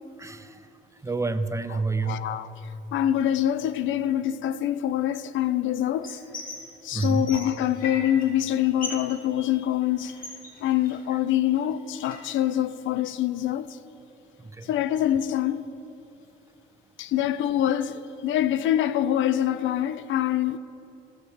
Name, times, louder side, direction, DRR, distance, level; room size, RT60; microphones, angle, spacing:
voice 1, 0.2-0.7 1.0-2.3 6.9-7.3 14.4-14.7, right 3 dB, 15° right, 0.5 m, -28 dB
voice 2, 1.7-2.5 2.9-6.2 6.8-10.1 10.6-13.8 14.6-15.6 17.0-20.6, left 11 dB, 75° left, 0.4 m, -25 dB
sound 1, 6.0-6.6 6.9-8.3 8.5-9.1 9.4-11.2 11.5-12.4, left 3 dB, 45° left, 2.6 m, -38 dB
19.0 x 6.5 x 3.5 m
cardioid pair, 90°, 20 cm